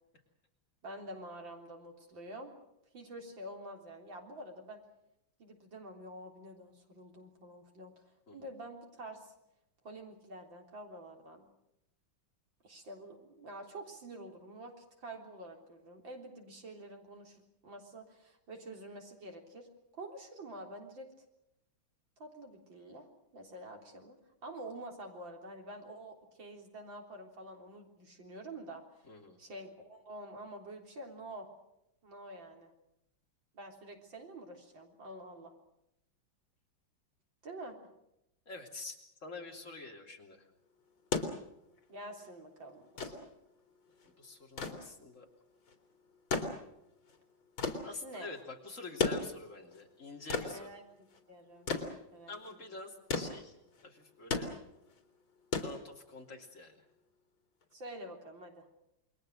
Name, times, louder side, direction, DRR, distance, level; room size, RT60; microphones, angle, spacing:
voice 1, 0.8-2.5 2.9-4.8 5.4-7.9 8.3-9.3 9.8-11.4 12.6-19.7 19.9-21.1 22.2-23.1 23.3-28.8 29.4-31.5 32.0-32.7 33.5-35.5 37.4-37.8 41.9-43.3 48.0-48.3 50.5-50.9 51.3-52.4 57.7-58.7, right 1 dB, 65° right, 2 dB, 4.4 m, -48 dB
voice 2, 29.0-29.4 38.5-39.0 39.2-40.4 44.2-45.3 47.8-50.8 52.3-53.6 53.8-54.5 55.6-56.8, left 3 dB, 35° left, 1 dB, 3.5 m, -47 dB
sound 1, 40.9-56.4 57.6-57.7, left 4 dB, 75° left, 3.5 m, -38 dB
28.5 x 22.0 x 6.4 m, 0.83 s
omnidirectional pair, 2.2 m